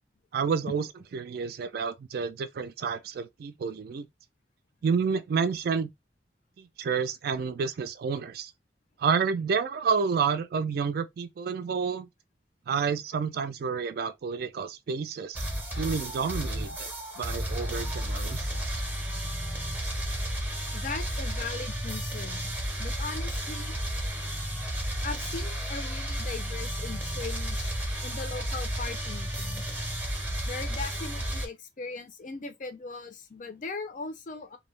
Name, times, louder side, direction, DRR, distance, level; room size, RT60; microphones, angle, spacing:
voice 1, 0.3-0.9 1.1-4.1 4.8-5.9 6.6-8.5 9.0-12.1 12.7-15.5 15.8-16.9 17.2-18.5, right 5 dB, 60° right, 0.3 m, -29 dB
sound 1, 15.3-31.5, equal, 10° right, 0.6 m, -32 dB
voice 2, 20.7-22.5 22.8-23.7 25.0-27.7 28.0-29.6 30.5-34.6, left 4 dB, 45° left, 0.5 m, -39 dB
2.2 x 2.0 x 3.2 m
head